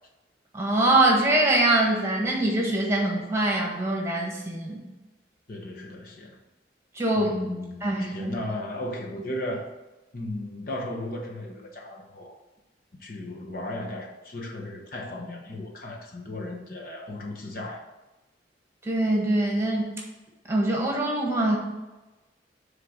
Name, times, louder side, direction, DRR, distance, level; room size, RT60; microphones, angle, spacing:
voice 1, 0.5-4.8 6.9-7.3 7.8-8.4 18.8-19.9 20.5-21.6, right 1 dB, 15° right, -2 dB, 1.5 m, -23 dB
voice 2, 5.5-6.4 7.2-9.7 10.1-12.4 13.0-17.8, left 1 dB, 50° left, 0 dB, 0.9 m, -35 dB
6.6 x 3.7 x 6.2 m, 1.1 s
head